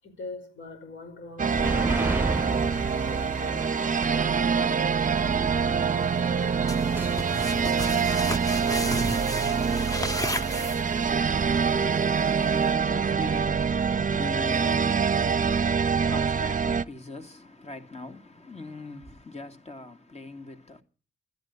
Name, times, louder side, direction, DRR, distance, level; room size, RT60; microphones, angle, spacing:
voice 1, 0.0-6.9 12.0-12.2, left 3 dB, 85° left, 5.4 m, -44 dB
sound 1, 1.4-12.7, right 2 dB, 10° right, 0.9 m, -36 dB
sound 2, 1.4-16.8, right 6 dB, 45° right, 0.7 m, -25 dB
sound 3, 6.7-11.2, left 1 dB, 20° left, 1.6 m, -33 dB
voice 2, 11.1-20.8, left 2 dB, 35° left, 2.6 m, -42 dB
13.0 x 10.5 x 8.2 m
cardioid pair, 55°, 19 cm